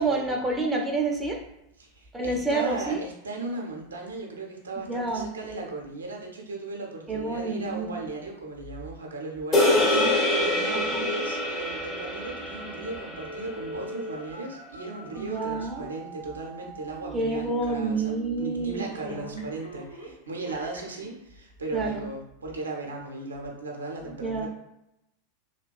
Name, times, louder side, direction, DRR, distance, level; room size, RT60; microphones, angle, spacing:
voice 1, 0.0-1.4 2.1-3.0 4.8-5.3 7.1-7.9 9.7-10.1 10.9-11.1 15.2-15.9 17.1-19.4 21.7-22.1 24.0-24.5, right 3 dB, 10° right, 1 dB, 0.5 m, -29 dB
voice 2, 1.8-24.5, right 2 dB, 75° right, 0 dB, 0.5 m, -37 dB
sound 1, 9.5-14.0, left 1 dB, 25° left, 0.7 m, -26 dB
Telephone, 13.2-21.2 21.7-21.8, right 3 dB, 80° left, 0.7 m, -42 dB
3.1 x 2.2 x 2.2 m, 0.86 s
figure-of-eight pair, 90°, 0 cm